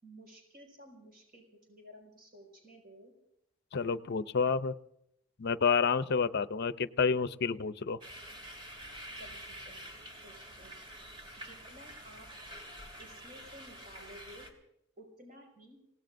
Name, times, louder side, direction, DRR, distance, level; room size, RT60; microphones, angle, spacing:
voice 1, 0.0-3.1 9.2-9.8 10.2-10.7 11.4-12.3 13.0-14.5 15.0-15.8, equal, 45° right, 1 dB, 5.5 m, -54 dB
voice 2, 3.7-4.7 5.4-8.0, left 5 dB, 55° left, 13 dB, 0.6 m, -29 dB
sound 1, 8.0-14.5, right 1 dB, 25° right, 2.7 m, -48 dB
30.0 x 18.0 x 2.6 m, 0.80 s
head